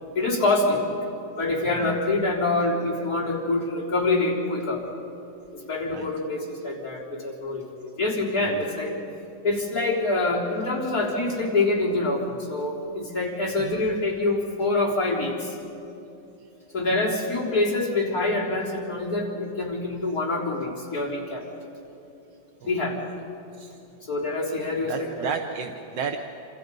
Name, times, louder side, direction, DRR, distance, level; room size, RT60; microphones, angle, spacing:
voice 1, 0.1-0.8 1.4-4.8 5.5-8.9 9.4-15.6 16.7-21.5 22.7-23.0 24.0-25.3, left 2 dB, 50° left, -4 dB, 4.3 m, -26 dB
voice 2, 24.8-26.2, right 6 dB, 80° right, 5 dB, 1.6 m, -32 dB
28.0 x 26.5 x 5.3 m, 2.8 s
omnidirectional pair, 1.9 m